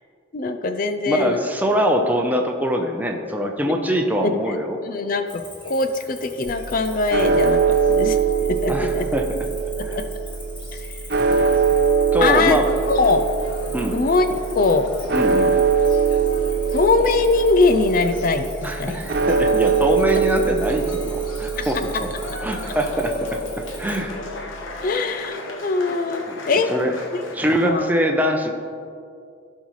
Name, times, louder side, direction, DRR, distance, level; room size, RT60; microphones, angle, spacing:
voice 1, 0.3-1.4 4.2-4.6 4.8-7.6 7.9-8.2 8.5-9.0 9.8-10.0 10.8-10.9 12.2-13.3 13.9-14.3 14.5-14.9 16.7-19.0 21.6-21.7 24.8-26.7 27.6-27.9, left 3 dB, 45° left, 8 dB, 0.4 m, -21 dB
voice 2, 1.1-4.8 8.7-9.3 9.8-10.0 12.1-12.7 13.7-14.0 15.1-15.5 18.6-22.1 22.4-23.4 23.8-24.1 26.3-26.4 26.7-26.9 27.3-28.5, equal, 10° right, 3 dB, 0.7 m, -23 dB
Cricket, 5.3-24.0, left 1 dB, 25° left, 1.8 m, -42 dB
sound 1, 6.5-24.9, right 6 dB, 55° right, 0.7 m, -23 dB
sound 2, 12.6-27.7, left 2 dB, 85° left, 0.9 m, -37 dB
16.0 x 5.6 x 3.2 m, 2.3 s
head